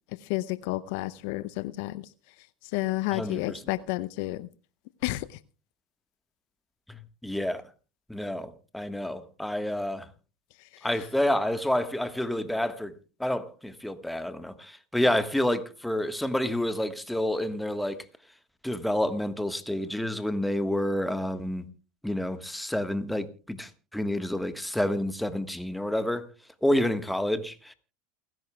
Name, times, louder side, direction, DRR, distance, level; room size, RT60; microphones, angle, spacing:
voice 1, 0.3-2.1 2.7-4.5 5.0-5.4 10.7-10.8, left 18 dB, 65° left, 0.6 m, -31 dB
voice 2, 3.1-3.6 7.2-7.6 8.1-10.1 10.8-12.9 13.2-18.0 18.6-21.6 22.0-26.3 26.6-27.7, left 1 dB, 5° left, 1.4 m, -29 dB
29.0 x 11.0 x 2.3 m
hypercardioid pair, 85°, 0 cm